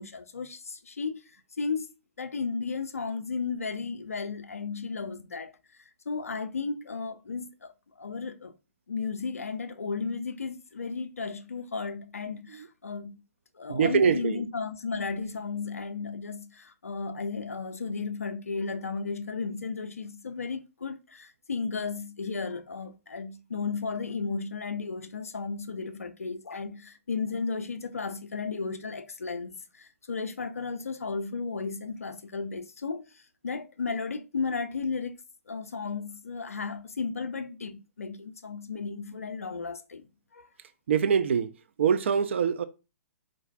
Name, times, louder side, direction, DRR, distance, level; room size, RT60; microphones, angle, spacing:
voice 1, 0.0-1.9 2.2-8.5 8.9-13.1 13.6-35.2 35.5-40.5, left 4 dB, 75° left, 0.4 m, -34 dB
voice 2, 13.7-14.4 40.9-41.5 41.8-42.6, right 7 dB, 55° right, 0.3 m, -24 dB
3.7 x 2.6 x 2.2 m
figure-of-eight pair, 115°, 8 cm